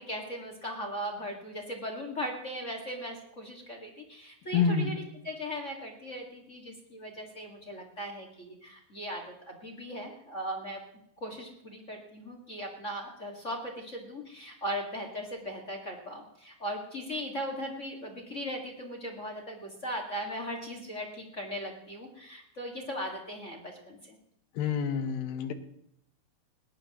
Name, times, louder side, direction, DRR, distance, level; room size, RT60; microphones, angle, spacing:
voice 1, 0.0-4.9 5.2-10.8 11.2-24.2, equal, 30° left, 1 dB, 1.3 m, -38 dB
voice 2, 4.5-5.0 24.6-25.5, left 6 dB, 75° left, 9 dB, 2.7 m, -27 dB
20.5 x 18.0 x 3.0 m, 0.76 s
omnidirectional pair, 4.4 m